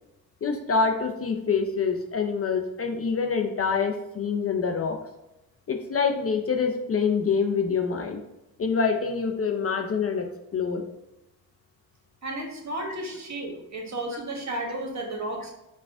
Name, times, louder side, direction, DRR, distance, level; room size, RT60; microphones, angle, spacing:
voice 1, 0.4-5.0 5.7-8.2 8.6-10.3 10.5-10.8, left 5 dB, 35° left, 4 dB, 0.5 m, -26 dB
voice 2, 12.2-15.5, right 1 dB, 45° right, 1 dB, 1.3 m, -33 dB
4.8 x 2.3 x 3.4 m, 0.89 s
supercardioid pair, 55°, 39 cm